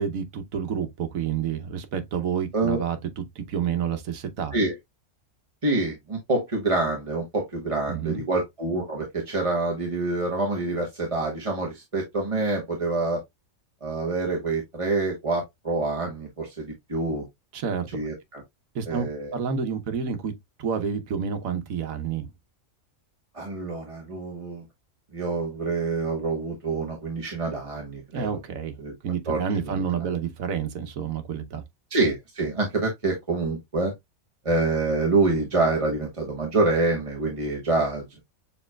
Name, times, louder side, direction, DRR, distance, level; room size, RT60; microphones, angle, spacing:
voice 1, 0.0-3.0 3.4-4.5 7.9-8.2 17.5-18.0 18.7-19.1 19.3-20.3 20.6-22.3 28.1-28.7 29.0-31.6, right 7 dB, 80° right, 1.3 m, -29 dB
voice 2, 5.6-13.2 13.8-17.2 17.9-18.4 18.9-19.4 23.3-24.6 25.1-28.3 28.8-28.9 29.3-29.4 29.7-29.8 31.9-33.9 34.4-38.2, right 3 dB, 25° right, 1.1 m, -26 dB
6.8 x 3.0 x 2.2 m
omnidirectional pair, 1.4 m